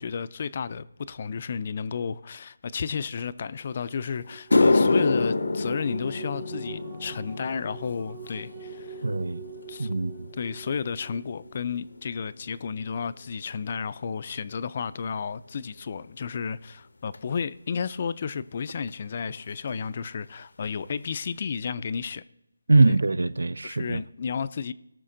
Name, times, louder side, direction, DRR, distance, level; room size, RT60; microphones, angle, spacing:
voice 1, 0.0-9.1 9.7-9.9 10.4-22.2 23.6-24.7, left 6 dB, 35° left, 0.4 m, -32 dB
sound 1, 3.7-11.5, right 9 dB, 20° right, 0.6 m, -45 dB
sound 2, 3.8-3.9 4.3-12.8 13.1-13.5 14.3-14.4 17.1-17.2 18.9-19.0 19.2-19.4 19.7-20.2 20.6-20.7 21.2-21.3, left 3 dB, 70° left, 0.6 m, -28 dB
voice 2, 9.0-9.4 9.8-10.3 22.7-24.0, right 3 dB, 80° right, 0.5 m, -22 dB
18.0 x 6.4 x 3.8 m
figure-of-eight pair, 170°, 0 cm